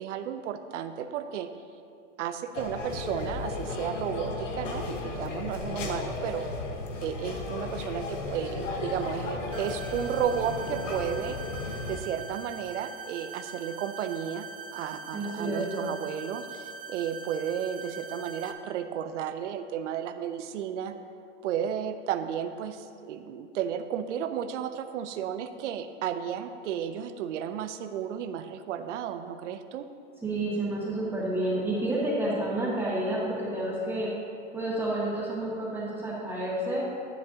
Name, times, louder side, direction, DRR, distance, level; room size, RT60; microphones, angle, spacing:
voice 1, 0.0-1.5 2.2-6.5 7.0-11.4 11.9-14.5 14.7-20.9 21.4-29.9, right 9 dB, 75° right, 9 dB, 0.7 m, -33 dB
sound 1, 2.5-12.0, left 3 dB, 85° left, 1.4 m, -34 dB
sound 2, 9.5-18.5, right 4 dB, 20° right, 0.6 m, -42 dB
voice 2, 15.1-15.9 30.2-34.1 34.5-36.9, right 1 dB, 5° right, -11 dB, 1.9 m, -30 dB
10.5 x 10.5 x 2.8 m, 2.6 s
hypercardioid pair, 130°, 37 cm